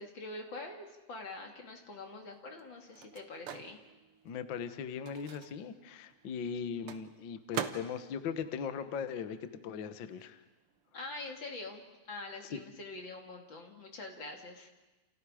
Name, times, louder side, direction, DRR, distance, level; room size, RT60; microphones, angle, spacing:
voice 1, 0.0-3.8 10.9-11.8 12.1-14.7, left 2 dB, 40° left, 2 dB, 2.8 m, -45 dB
Microwave oven, 1.6-9.7 10.0-11.9, right 8 dB, 60° right, 1.5 m, -46 dB
voice 2, 4.2-10.4 12.5-12.6, left 7 dB, 60° left, 10 dB, 1.2 m, -39 dB
29.0 x 29.0 x 5.0 m, 1.1 s
omnidirectional pair, 3.8 m